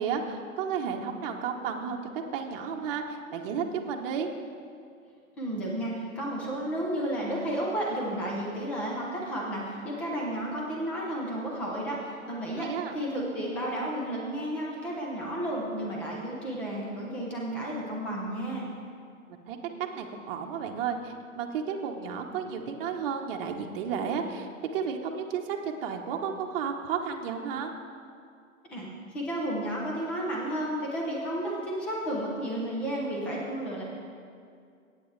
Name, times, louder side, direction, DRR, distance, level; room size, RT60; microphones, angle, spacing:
voice 1, 0.0-4.3 12.6-12.9 19.5-19.6 19.9-27.7, right 6 dB, 40° right, 2 dB, 1.0 m, -32 dB
voice 2, 5.4-18.7 28.7-33.8, right 1 dB, 5° left, -3 dB, 0.3 m, -32 dB
16.5 x 8.6 x 3.2 m, 2.3 s
hypercardioid pair, 130°, 42 cm